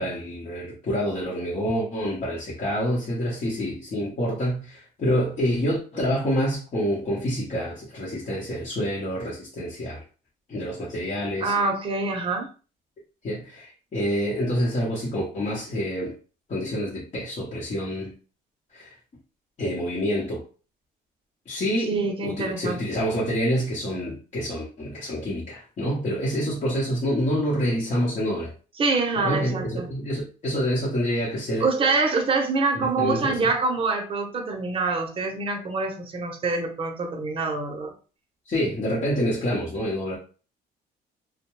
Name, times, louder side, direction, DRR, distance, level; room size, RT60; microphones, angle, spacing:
voice 1, 0.0-10.0 10.5-11.5 13.2-16.1 16.5-18.1 18.7-18.9 19.6-20.4 21.5-21.9 22.2-28.5 29.1-31.7 32.8-33.4 38.5-40.2, equal, 40° left, -7 dB, 0.9 m, -27 dB
voice 2, 11.4-12.5 21.9-22.8 28.8-29.9 31.6-37.9, right 3 dB, 35° right, 4 dB, 0.7 m, -25 dB
2.2 x 2.1 x 3.0 m, 0.36 s
cardioid pair, 110°, 17 cm